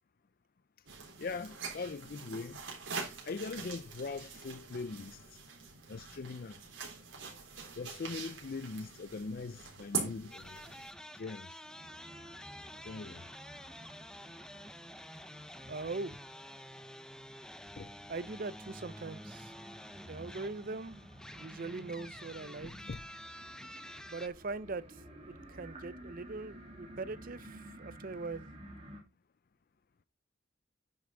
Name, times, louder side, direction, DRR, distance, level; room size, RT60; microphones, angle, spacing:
sound 1, 0.9-10.9, right 5 dB, 85° right, 3.7 m, -43 dB
voice 1, 1.2-2.6 3.3-5.2 5.9-6.6 7.8-10.6 11.2-11.6 12.8-13.2 17.8-17.9 22.6-23.0, left 4 dB, 50° left, 0.4 m, -41 dB
sound 2, 10.3-24.3, left 1 dB, 5° left, 0.6 m, -49 dB
sound 3, 11.6-29.0, right 1 dB, 30° right, 2.8 m, -54 dB
voice 2, 15.7-16.2 18.1-19.5 20.0-21.0 21.3-22.7 24.1-24.8 25.3-28.4, right 3 dB, 45° right, 0.6 m, -41 dB
9.8 x 6.8 x 3.8 m
head